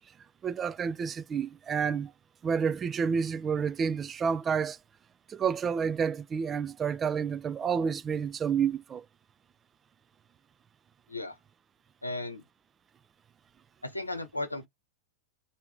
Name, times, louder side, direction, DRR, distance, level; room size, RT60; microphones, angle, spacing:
voice 1, 0.4-2.1 2.4-4.8 5.3-9.1, right 6 dB, 20° right, 0.3 m, -29 dB
voice 2, 12.0-12.4 13.8-14.7, left 2 dB, 85° left, 0.8 m, -35 dB
3.4 x 2.8 x 4.5 m
figure-of-eight pair, 90°, 0 cm